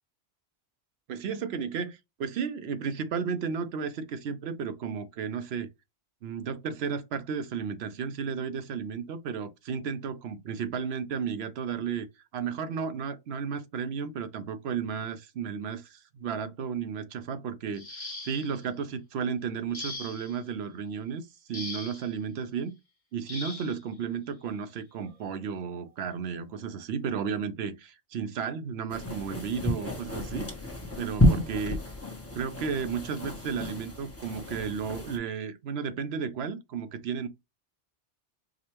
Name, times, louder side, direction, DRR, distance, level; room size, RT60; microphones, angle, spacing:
voice 1, 1.1-5.7 6.2-12.1 12.3-22.7 23.1-30.5 31.0-31.8 32.3-37.3, right 6 dB, 75° right, 0.8 m, -33 dB
sound 1, 17.7-18.6 19.7-20.4 21.5-22.1 23.3-23.8 25.0-25.1 25.6-25.8, left 2 dB, 35° left, 1.4 m, -40 dB
sound 2, 28.9-35.2, left 1 dB, 15° left, 0.9 m, -30 dB
4.9 x 2.2 x 3.0 m
omnidirectional pair, 1.1 m